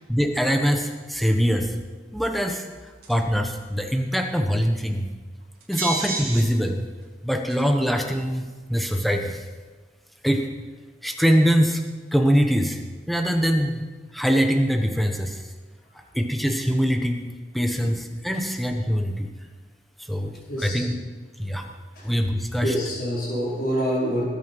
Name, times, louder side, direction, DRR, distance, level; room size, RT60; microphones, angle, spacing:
voice 1, 0.1-1.7 2.1-2.7 3.1-5.1 5.7-6.8 7.2-9.4 10.2-10.5 11.0-11.8 12.1-12.8 13.1-13.8 14.1-15.4 16.1-17.2 17.5-19.3 20.0-21.0 21.4-21.6 22.0-22.7, equal, ahead, 4 dB, 1.2 m, -23 dB
sound 1, 3.0-3.3 5.6-6.4 7.0-7.1 7.5-7.8, right 3 dB, 55° right, 4.9 m, -29 dB
voice 2, 20.5-20.8 21.9-22.1 22.6-24.2, equal, 50° left, -5 dB, 4.8 m, -26 dB
19.5 x 8.7 x 5.6 m, 1.4 s
head